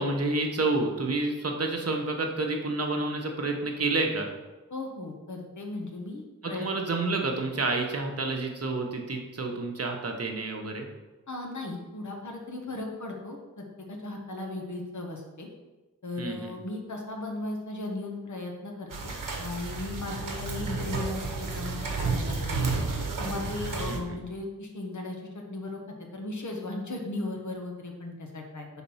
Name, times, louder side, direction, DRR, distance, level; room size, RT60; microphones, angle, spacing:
voice 1, 0.0-4.3 6.4-10.9 16.2-16.5 23.9-24.2, right 2 dB, 50° right, 2 dB, 0.9 m, -29 dB
voice 2, 4.7-6.7 11.3-15.5 16.0-22.6 23.2-28.7, left 2 dB, 65° left, 1 dB, 1.1 m, -37 dB
sound 1, 18.9-24.0, right 3 dB, 80° right, 0.8 m, -31 dB
4.2 x 4.1 x 5.5 m, 1.1 s
wide cardioid pair, 80°, 32 cm